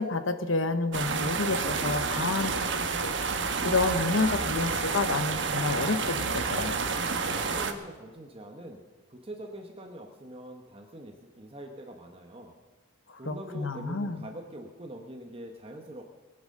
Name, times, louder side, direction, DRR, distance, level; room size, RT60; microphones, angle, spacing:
voice 1, 0.0-2.6 3.0-3.1 3.6-6.7 13.3-14.3, left 3 dB, 80° left, 9 dB, 1.2 m, -29 dB
sound 1, 0.9-7.7, right 4 dB, 65° right, 1.2 m, -29 dB
voice 2, 7.2-12.6 13.2-16.0, right 1 dB, 30° right, 3 dB, 1.1 m, -44 dB
21.5 x 8.0 x 6.6 m, 1.3 s
head